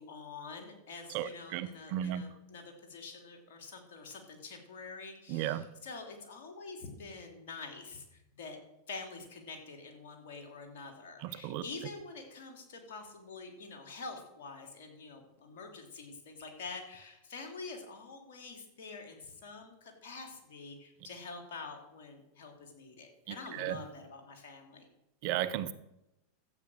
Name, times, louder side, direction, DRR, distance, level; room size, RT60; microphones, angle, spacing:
voice 1, 0.0-8.6 8.9-24.9, left 4 dB, 70° left, 3 dB, 3.3 m, -46 dB
voice 2, 1.1-2.2 5.3-5.7 11.2-11.6 23.3-23.8 25.2-25.7, right 12 dB, 55° right, 15 dB, 0.9 m, -35 dB
13.0 x 8.5 x 6.5 m, 0.87 s
hypercardioid pair, 100°, 0 cm